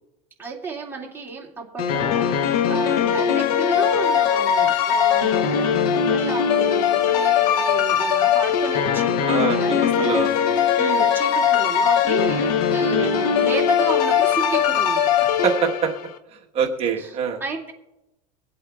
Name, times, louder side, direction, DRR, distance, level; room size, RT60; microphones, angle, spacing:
voice 1, 0.4-10.2 10.7-15.1 17.0-17.1 17.4-17.7, right 5 dB, 10° right, -3 dB, 2.3 m, -32 dB
sound 1, 1.8-16.1, left 8 dB, 60° left, 1.1 m, -20 dB
voice 2, 9.2-9.6 10.0-10.6 13.0-13.1 15.4-15.9 16.5-17.4, right 7 dB, 30° right, 1 dB, 1.3 m, -24 dB
23.0 x 8.4 x 2.4 m, 0.94 s
supercardioid pair, 135°, 20 cm